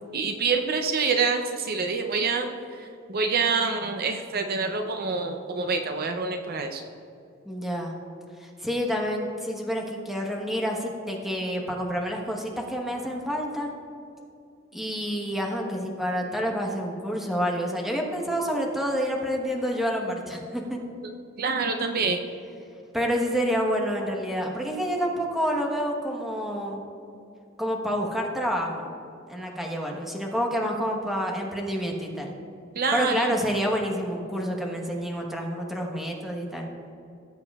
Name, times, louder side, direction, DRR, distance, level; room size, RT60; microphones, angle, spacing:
voice 1, 0.1-2.5 2.8-6.8 21.4-22.2 32.8-33.3, right 4 dB, 50° right, 5 dB, 0.6 m, -26 dB
voice 2, 7.4-8.0 8.4-13.7 14.7-20.8 22.9-26.8 27.6-28.9 29.3-32.3 32.9-36.7, equal, ahead, 0 dB, 1.1 m, -28 dB
18.0 x 7.8 x 2.4 m, 2.6 s
head